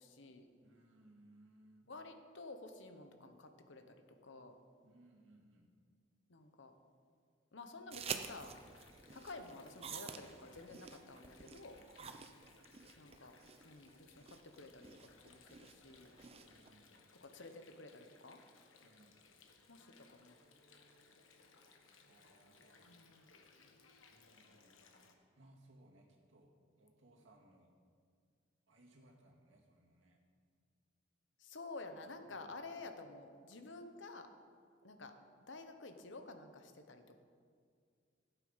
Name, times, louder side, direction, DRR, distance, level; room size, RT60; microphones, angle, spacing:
voice 1, 0.0-0.4 1.9-4.0 4.2-4.6 6.3-6.7 7.5-8.6 9.1-11.8 13.0-13.3 13.6-16.1 17.2-18.4 19.7-20.4 22.8-23.3 31.4-34.3 34.8-35.1 35.5-37.2, left 3 dB, 70° left, 7 dB, 1.0 m, -51 dB
voice 2, 0.6-1.9 4.8-5.7 12.0-12.2 16.4-17.1 18.8-19.2 22.0-23.0 23.6-24.8 25.4-26.5 26.8-27.7 28.7-30.2 32.2-32.5, right 1 dB, 75° right, 0 dB, 2.1 m, -65 dB
sound 1, 7.9-16.7, right 6 dB, 30° right, 0.6 m, -49 dB
Water, 8.2-25.1, left 4 dB, 90° left, 1.3 m, -65 dB
15.5 x 8.2 x 5.7 m, 2.1 s
head